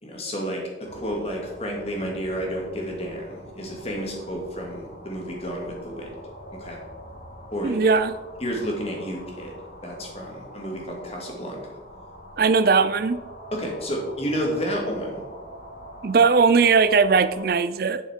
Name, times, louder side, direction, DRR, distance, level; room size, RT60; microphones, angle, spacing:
voice 1, 0.0-6.2 6.5-6.8 7.5-7.9 8.4-9.5 9.8-11.6 13.5-15.2, equal, 35° left, -1 dB, 2.1 m, -31 dB
sound 1, 0.8-17.5, equal, 50° left, 1.9 m, -44 dB
voice 2, 7.6-8.2 12.4-13.2 16.0-18.0, right 5 dB, 55° right, 12 dB, 0.4 m, -19 dB
11.0 x 5.8 x 4.5 m, 1.2 s
head